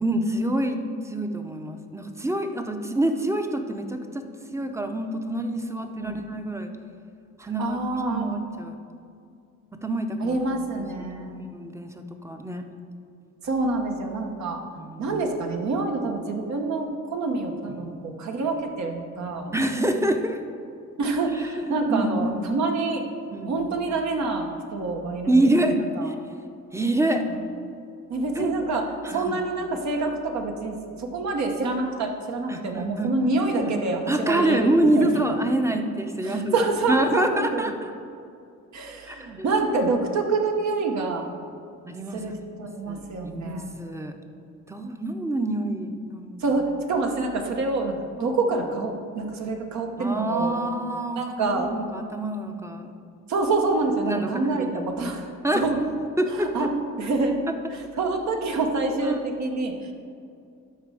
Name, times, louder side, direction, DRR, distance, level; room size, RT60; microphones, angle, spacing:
voice 1, 0.0-4.2 4.5-6.7 7.4-7.8 8.1-8.7 9.8-10.4 11.5-12.6 14.8-15.2 17.7-17.8 19.5-20.4 21.3-22.6 23.3-23.7 25.3-26.1 26.7-27.2 28.3-28.6 29.0-29.4 32.5-33.3 33.6-33.7 34.1-36.6 36.9-37.9 39.1-39.6 41.9-42.2 42.9-44.2 44.7-46.5 48.2-48.3 50.0-52.9 54.1-54.9 55.4-55.6 56.2-56.7 59.0-59.2, right 1 dB, 10° right, 6 dB, 0.7 m, -26 dB
voice 2, 7.6-8.3 10.2-11.5 13.4-14.6 15.0-19.5 21.0-23.0 23.5-26.1 28.1-28.8 29.1-35.1 36.2-37.7 38.7-41.3 42.1-43.7 46.4-50.6 51.2-51.7 53.3-55.3 55.5-55.9 56.3-56.7 57.0-57.4 57.7-59.9, right 3 dB, 65° right, 3 dB, 1.1 m, -27 dB
12.0 x 4.1 x 4.8 m, 2.4 s
cardioid pair, 90°, 30 cm